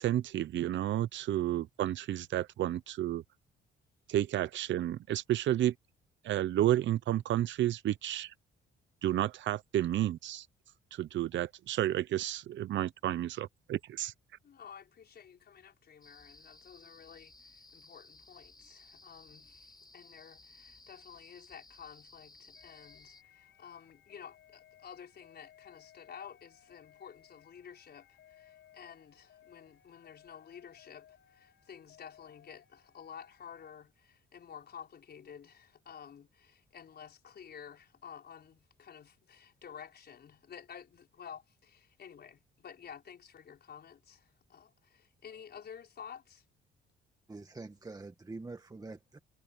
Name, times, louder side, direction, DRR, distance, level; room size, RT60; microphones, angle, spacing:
voice 1, 0.0-3.2 4.1-5.7 6.2-8.3 9.0-10.5 10.9-14.1, right 13 dB, 70° right, 0.8 m, -31 dB
voice 2, 14.4-46.4, left 8 dB, 55° left, 5.2 m, -51 dB
sound 1, 16.0-23.2, left 3 dB, 20° left, 6.1 m, -57 dB
sound 2, 22.5-33.7, left 11 dB, 75° left, 5.3 m, -62 dB
voice 3, 47.3-49.2, right 3 dB, 20° right, 1.5 m, -45 dB
cardioid pair, 90°, 20 cm